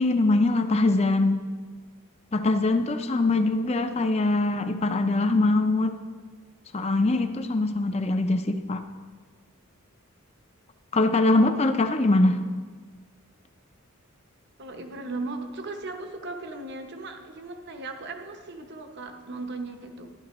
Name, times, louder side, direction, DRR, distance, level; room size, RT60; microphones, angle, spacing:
voice 1, 0.0-1.5 2.3-6.0 6.7-8.8 10.9-12.4, left 2 dB, 30° left, 8 dB, 0.5 m, -23 dB
voice 2, 11.6-12.6 14.6-20.1, right 2 dB, 50° right, 5 dB, 0.9 m, -37 dB
11.5 x 11.5 x 3.1 m, 1.5 s
head